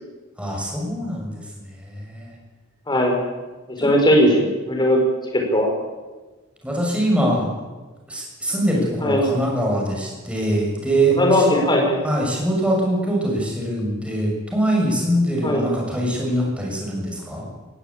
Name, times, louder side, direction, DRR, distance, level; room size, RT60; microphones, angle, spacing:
voice 1, 0.4-2.3 3.8-3.9 6.6-7.5 8.1-11.5 12.0-17.4, right 1 dB, 5° right, -2 dB, 6.8 m, -23 dB
voice 2, 2.9-3.2 3.7-5.0 5.3-5.7 9.0-9.2 11.2-12.0 15.4-15.6, left 1 dB, 20° left, 1 dB, 5.1 m, -18 dB
20.0 x 15.0 x 8.8 m, 1.2 s
head